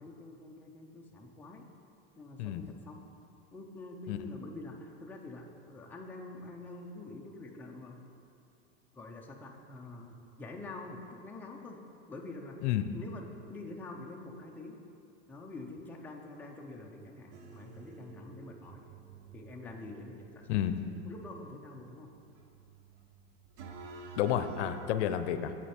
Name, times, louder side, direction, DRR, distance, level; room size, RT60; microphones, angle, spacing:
voice 1, 0.0-1.6 2.2-3.0 3.5-8.1 8.9-11.8 12.1-13.2 13.5-14.8 15.3-18.8 19.3-20.6 21.0-22.1, left 2 dB, 5° left, 0 dB, 0.5 m, -46 dB
voice 2, 12.6-12.9 20.5-20.7 24.2-25.6, left 11 dB, 75° left, 10 dB, 0.6 m, -30 dB
sound 1, 17.3-24.9, right 2 dB, 80° right, 1.1 m, -50 dB
8.0 x 7.5 x 4.3 m, 2.6 s
supercardioid pair, 140°, 34 cm